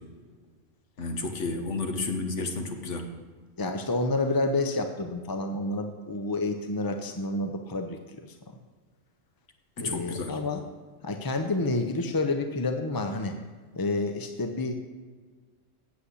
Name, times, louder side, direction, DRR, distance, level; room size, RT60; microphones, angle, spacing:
voice 1, 1.0-3.1 9.8-10.4, left 3 dB, 65° left, 4 dB, 1.6 m, -31 dB
voice 2, 3.6-8.4 9.8-10.6 11.0-13.4 13.7-14.7, left 2 dB, 30° left, 6 dB, 0.4 m, -29 dB
8.1 x 8.0 x 8.4 m, 1.5 s
omnidirectional pair, 1.3 m